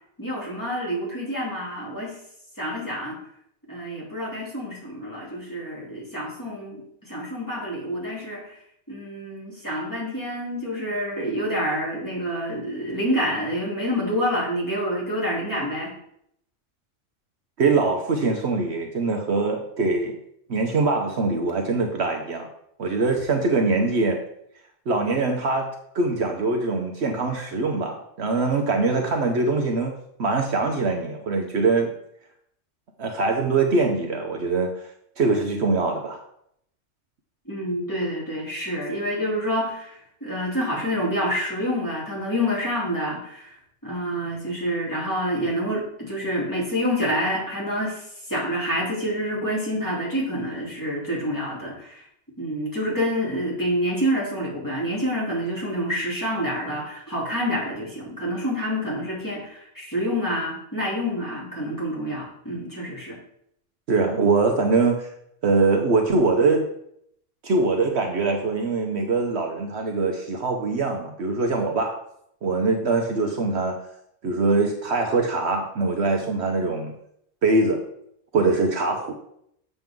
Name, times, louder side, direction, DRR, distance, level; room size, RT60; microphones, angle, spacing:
voice 1, 0.2-2.1 2.6-3.2 3.7-6.8 7.1-8.6 8.9-15.9 37.5-43.5 43.8-52.0 52.4-63.2, equal, 15° left, -6 dB, 2.8 m, -27 dB
voice 2, 17.6-20.2 20.5-22.5 22.8-24.2 24.9-25.7 25.9-31.9 33.0-34.9 35.2-36.2 63.9-65.1 65.4-66.6 67.4-72.0 72.4-73.8 74.2-76.9 77.4-77.8 78.3-79.1, right 3 dB, 60° right, 3 dB, 1.1 m, -23 dB
7.6 x 6.7 x 3.6 m, 0.73 s
omnidirectional pair, 1.3 m